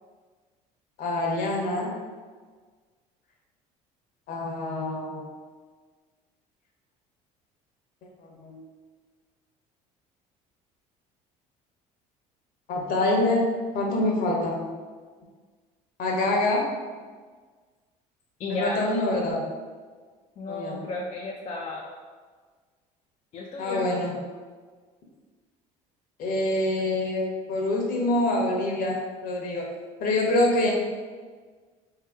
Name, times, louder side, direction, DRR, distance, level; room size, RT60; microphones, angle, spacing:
voice 1, 1.0-1.9 4.3-5.3 8.4-8.6 12.7-13.5 13.7-14.7 16.0-16.7 18.6-19.4 20.5-20.8 23.6-24.1 26.2-29.0 29.2-29.6 30.0-30.7, left 2 dB, 60° left, -1 dB, 0.9 m, -25 dB
voice 2, 18.4-18.8 20.4-21.9 23.3-24.0, left 2 dB, 45° left, -2 dB, 0.5 m, -33 dB
2.8 x 2.8 x 3.5 m, 1.5 s
supercardioid pair, 80°, 17 cm